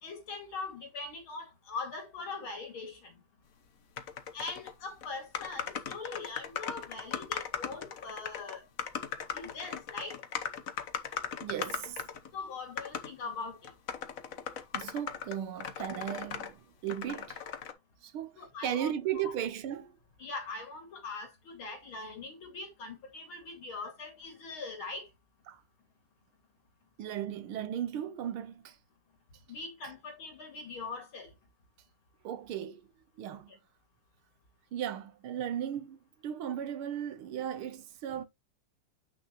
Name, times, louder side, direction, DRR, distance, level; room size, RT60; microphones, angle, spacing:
voice 1, 0.0-3.1 4.3-8.6 9.3-10.2 12.3-13.7 18.4-18.9 20.2-25.1 29.5-31.3, left 3 dB, 65° left, 3.3 m, -41 dB
sound 1, 4.0-4.7 5.0-5.1 5.3-12.3 12.8-13.1 13.6-16.5 16.9-17.7, left 7 dB, 50° left, 1.1 m, -38 dB
voice 2, 11.4-12.1 14.7-17.4 18.0-20.0 25.5-25.6 27.0-28.8 32.2-32.9 33.2-33.5 34.7-38.3, right 10 dB, 75° right, 1.8 m, -36 dB
8.4 x 6.2 x 3.0 m
omnidirectional pair, 2.4 m